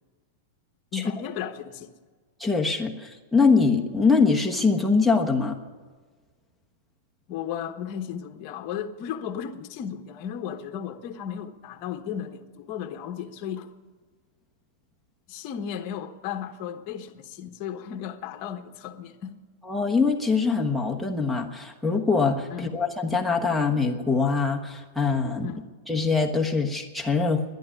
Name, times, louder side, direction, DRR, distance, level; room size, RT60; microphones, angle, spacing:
voice 1, 0.9-1.9 7.3-13.7 15.3-19.3 22.5-22.8 25.4-25.7, left 9 dB, 40° left, 1.2 m, -35 dB
voice 2, 2.4-5.6 19.7-25.5 25.9-27.4, left 4 dB, ahead, 1.2 m, -23 dB
11.0 x 11.0 x 10.0 m
supercardioid pair, 150°, 0 cm